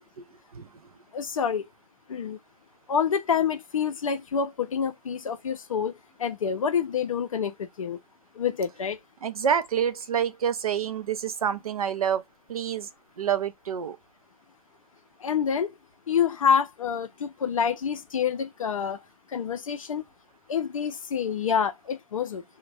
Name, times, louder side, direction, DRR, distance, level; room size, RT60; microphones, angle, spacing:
voice 1, 1.1-1.7 2.1-2.4 2.9-5.9 6.2-8.0 8.3-9.0 15.2-15.7 16.1-20.0 20.5-22.4, left 7 dB, 55° left, 0.5 m, -27 dB
voice 2, 9.2-12.2 12.5-12.9 13.2-14.0, right 8 dB, 60° right, 0.6 m, -27 dB
2.4 x 2.1 x 3.3 m
figure-of-eight pair, 135°, 21 cm